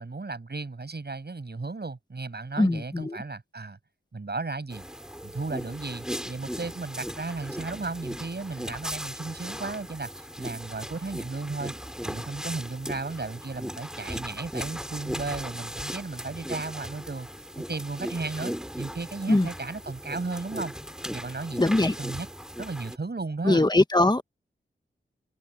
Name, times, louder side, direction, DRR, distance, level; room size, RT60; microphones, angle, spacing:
voice 1, 0.0-3.8 4.1-4.8 5.2-11.7 12.0-17.3 17.6-20.7 21.1-22.3 22.6-23.7, right 3 dB, 50° right, 7.6 m, -35 dB
voice 2, 2.6-3.2 19.3-19.5 21.6-21.9 23.5-24.2, left 2 dB, 20° left, 1.5 m, -21 dB
sound 1, 4.7-23.0, equal, 5° right, 3.6 m, -37 dB
cardioid pair, 55°, 21 cm